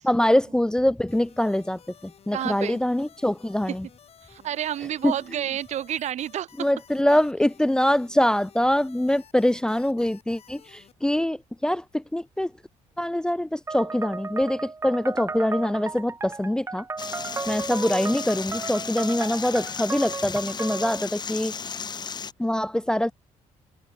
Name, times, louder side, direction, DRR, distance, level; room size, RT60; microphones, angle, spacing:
voice 1, 0.0-1.8 2.3-3.9 5.0-5.1 6.6-10.6 11.0-12.5 13.0-16.8 17.5-21.5 22.4-23.1, left 1 dB, 5° left, 0.5 m, -24 dB
sound 1, 1.1-10.9, left 8 dB, 50° left, 4.8 m, -54 dB
voice 2, 2.3-2.8 3.7-3.8 4.3-6.5 17.2-17.5, right 11 dB, 65° right, 1.5 m, -30 dB
sound 2, 13.7-21.1, right 4 dB, 20° right, 1.7 m, -34 dB
sound 3, 17.0-22.3, left 6 dB, 35° left, 1.7 m, -35 dB
cardioid pair, 125°, 13 cm